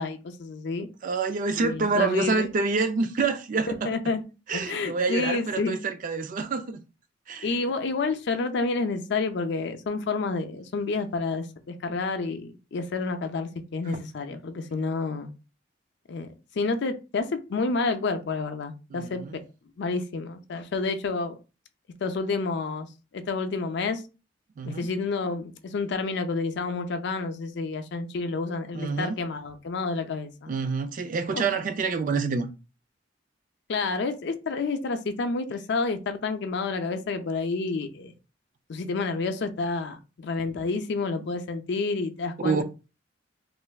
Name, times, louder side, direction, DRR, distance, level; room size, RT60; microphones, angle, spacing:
voice 1, 0.0-0.9 1.6-2.5 3.7-4.2 4.5-5.8 7.4-15.3 16.1-16.3 16.5-19.2 19.8-21.3 22.0-22.9 23.1-24.0 24.6-30.5 31.3-31.4 33.7-38.1 38.7-42.6, left 3 dB, 65° left, 0.4 m, -29 dB
voice 2, 1.0-3.9 4.5-6.8 7.3-7.5 18.9-19.4 24.6-24.9 28.7-29.2 30.5-32.5 42.4-42.6, right 4 dB, 45° right, 0.4 m, -27 dB
3.2 x 2.5 x 2.2 m
head